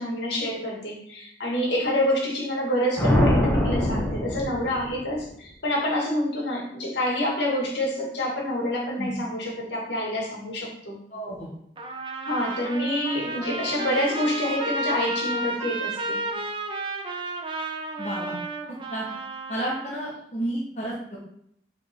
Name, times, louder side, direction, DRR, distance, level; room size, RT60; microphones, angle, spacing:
voice 1, 0.0-11.0 12.3-16.2, left 1 dB, 75° left, -2 dB, 2.2 m, -27 dB
sound 1, 3.0-5.2, left 1 dB, 10° left, 1.4 m, -23 dB
voice 2, 11.1-11.5 18.0-18.4 18.9-19.1 19.5-21.2, right 1 dB, 40° left, -5 dB, 1.2 m, -31 dB
Trumpet, 11.8-19.9, right 2 dB, 25° right, 0.6 m, -32 dB
7.9 x 4.3 x 3.7 m, 0.71 s
head